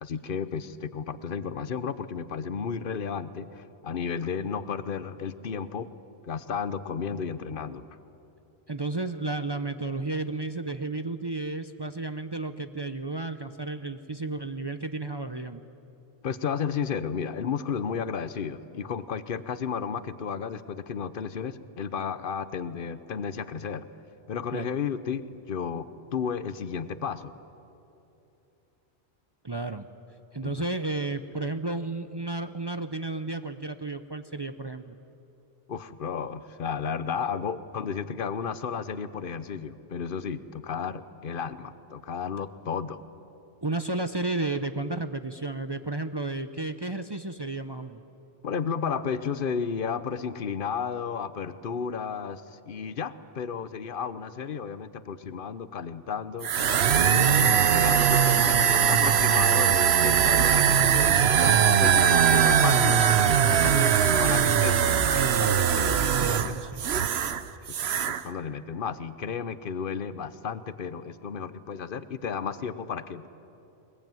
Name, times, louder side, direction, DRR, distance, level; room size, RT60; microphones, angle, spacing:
voice 1, 0.0-5.9 6.2-7.8 16.2-23.9 24.3-27.3 30.4-30.5 35.7-43.0 48.4-56.5 56.9-65.0 65.4-66.5 67.8-73.3, left 6 dB, 50° left, 14 dB, 1.0 m, -33 dB
voice 2, 8.7-15.6 24.5-24.7 29.4-29.9 30.3-34.9 43.6-48.0 66.2-66.8, right 2 dB, 30° right, 9 dB, 0.6 m, -32 dB
sound 1, 56.4-67.4 67.7-68.2, right 8 dB, 65° right, 1.0 m, -21 dB
21.5 x 21.0 x 9.1 m, 2.9 s
omnidirectional pair, 1.2 m